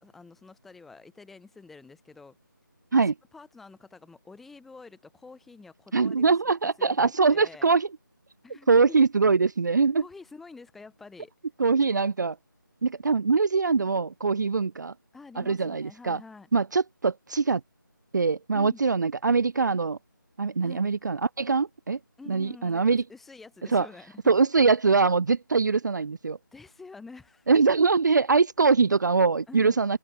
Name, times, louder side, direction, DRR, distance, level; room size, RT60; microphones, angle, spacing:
voice 1, 0.0-2.4 2.9-3.0 3.3-6.2 6.5-7.7 8.4-9.1 10.0-11.3 15.1-16.5 18.5-18.9 20.6-20.8 22.2-24.3 26.5-27.5 29.5-29.8, left 4 dB, ahead, 0.9 m, -48 dB
voice 2, 5.9-7.9 8.7-10.0 11.6-12.4 12.8-14.9 15.4-16.2 16.5-17.6 18.1-20.0 20.4-22.0 22.3-23.0 23.7-23.9 24.3-26.4 27.5-30.0, right 4 dB, 60° right, 0.4 m, -23 dB
open air
figure-of-eight pair, 165°, 11 cm